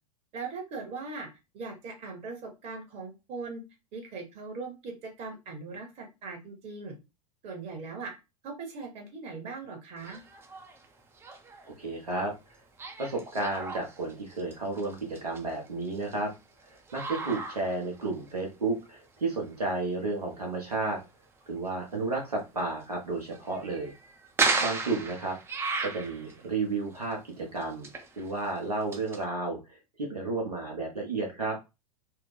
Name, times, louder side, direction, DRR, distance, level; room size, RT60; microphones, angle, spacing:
voice 1, 0.3-1.3 1.5-3.6 3.9-6.9 7.4-8.1 8.4-10.2 24.5-24.7, right 4 dB, 30° right, 2 dB, 1.1 m, -40 dB
sound 1, 10.0-10.9 11.1-11.7 12.8-16.2 16.7-18.3 18.9-19.0 19.6-19.7 22.6-22.8 23.3-26.5 26.9-27.1 27.6-29.2, right 4 dB, 10° right, 0.4 m, -34 dB
voice 2, 11.6-12.3 13.0-16.3 16.9-21.0 21.5-23.9 24.6-25.3 25.8-27.9 28.2-31.6, right 3 dB, 75° right, 0 dB, 1.0 m, -32 dB
3.3 x 2.0 x 3.2 m, 0.26 s
figure-of-eight pair, 90°, 20 cm